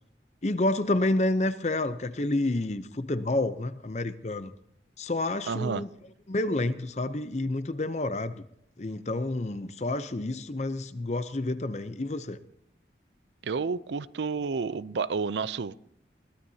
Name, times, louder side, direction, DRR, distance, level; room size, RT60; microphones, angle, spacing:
voice 1, 0.4-4.5 5.0-5.9 6.3-8.4 8.8-12.4, left 2 dB, 40° left, 0.6 m, -29 dB
voice 2, 5.5-5.9 13.4-15.7, right 5 dB, 80° right, 0.5 m, -30 dB
22.0 x 17.5 x 2.8 m
head